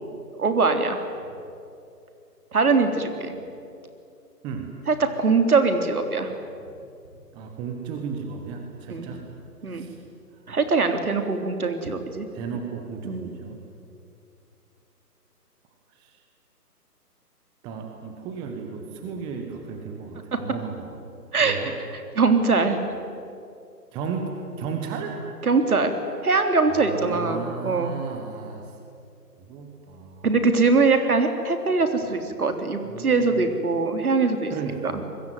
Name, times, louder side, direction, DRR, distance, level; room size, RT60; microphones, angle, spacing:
voice 1, 0.4-1.0 2.5-3.3 4.9-6.3 8.9-9.1 9.6-9.9 10.5-12.3 13.0-13.3 20.3-20.4 21.3-21.6 22.1-22.8 25.4-25.9 26.2-27.9 30.2-34.5, right 4 dB, 65° right, 7 dB, 3.6 m, -22 dB
voice 2, 7.3-9.2 9.7-10.0 12.3-13.6 16.0-16.2 17.6-21.0 21.4-21.7 23.9-24.3 24.6-25.2 26.7-28.7 29.5-30.3 32.8-33.5 34.5-35.0, right 6 dB, 10° right, 4 dB, 1.3 m, -34 dB
27.5 x 22.0 x 9.4 m, 2.5 s
figure-of-eight pair, 145°, 48 cm